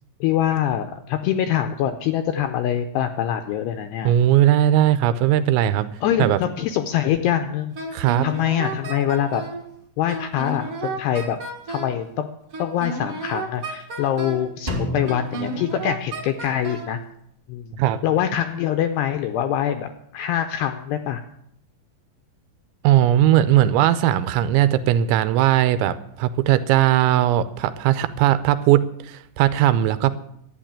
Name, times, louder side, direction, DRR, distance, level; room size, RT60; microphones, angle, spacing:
voice 1, 0.2-4.1 6.0-9.4 10.0-11.4 11.7-12.3 12.6-17.0 17.5-17.7 18.0-21.2, left 10 dB, 80° left, 8 dB, 2.4 m, -24 dB
voice 2, 4.0-5.9 6.2-6.4 7.9-8.3 17.8-18.0 22.8-30.1, right 12 dB, 80° right, 13 dB, 2.9 m, -18 dB
Wind instrument woodwind instrument, 7.7-9.6 10.1-12.0 12.5-14.5 15.1-16.9, right 3 dB, 45° right, 2.0 m, -32 dB
Drum, 14.7-16.6, left 1 dB, 25° right, 0.8 m, -31 dB
11.5 x 9.1 x 8.7 m, 0.73 s
omnidirectional pair, 5.5 m